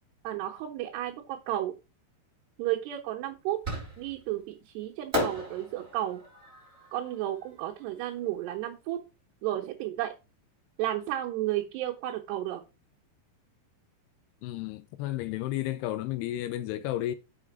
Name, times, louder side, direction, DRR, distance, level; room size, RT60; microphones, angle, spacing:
voice 1, 0.2-1.7 2.6-3.6 4.0-6.2 6.9-9.0 9.4-10.1 10.8-12.6, right 13 dB, 80° right, 3.0 m, -32 dB
Fireworks, 3.6-4.3 5.1-8.2, left 1 dB, 15° right, 3.1 m, -35 dB
voice 2, 14.4-17.2, left 14 dB, 85° left, 2.4 m, -32 dB
6.2 x 5.9 x 4.8 m
omnidirectional pair, 5.0 m